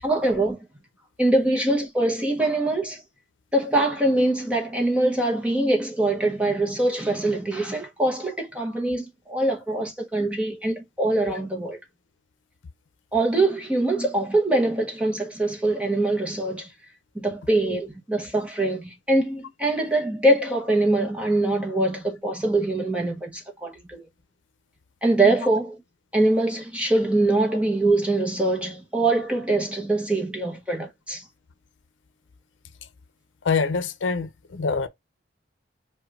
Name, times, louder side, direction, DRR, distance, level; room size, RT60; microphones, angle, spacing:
voice 1, 0.0-0.7 1.2-3.0 3.5-11.8 13.1-16.7 17.1-24.1 25.0-25.8 26.1-31.2, right 2 dB, 5° right, 0.7 m, -23 dB
voice 2, 33.4-34.9, left 4 dB, 90° left, 0.6 m, -25 dB
4.8 x 2.2 x 2.4 m
head